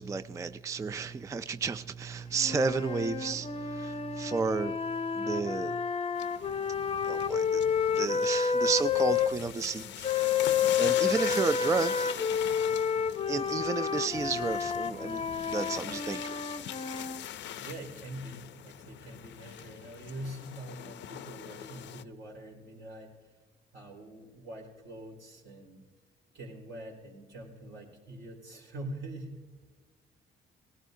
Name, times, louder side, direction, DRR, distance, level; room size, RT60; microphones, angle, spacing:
voice 1, 0.0-5.8 7.1-7.6 7.9-10.4 10.8-12.2 13.3-16.4, right 4 dB, 15° right, 12 dB, 0.3 m, -32 dB
sound 1, 2.4-9.3 10.0-17.2, left 6 dB, 30° left, 0.6 m, -30 dB
sound 2, 6.1-22.0, left 11 dB, 70° left, 0.6 m, -42 dB
voice 2, 17.6-23.3 23.7-25.8 26.3-29.4, right 1 dB, 70° right, 1 dB, 4.4 m, -44 dB
19.0 x 16.5 x 2.7 m, 1.4 s
cardioid pair, 120°, 19 cm